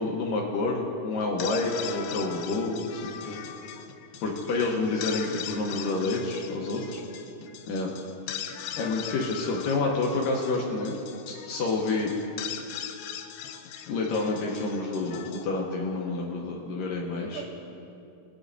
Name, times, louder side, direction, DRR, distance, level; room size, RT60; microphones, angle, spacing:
voice 1, 0.0-3.4 4.2-7.0 7.7-7.9 8.7-10.9 11.3-12.1 13.9-17.4, left 3 dB, 70° left, -1 dB, 2.2 m, -29 dB
sound 1, 1.2-16.5, left 10 dB, 90° left, 2.8 m, -40 dB
voice 2, 6.7-7.6 7.9-8.1 17.2-17.4, right 7 dB, 90° right, 2 dB, 1.8 m, -45 dB
23.0 x 10.0 x 2.6 m, 2.7 s
omnidirectional pair, 4.9 m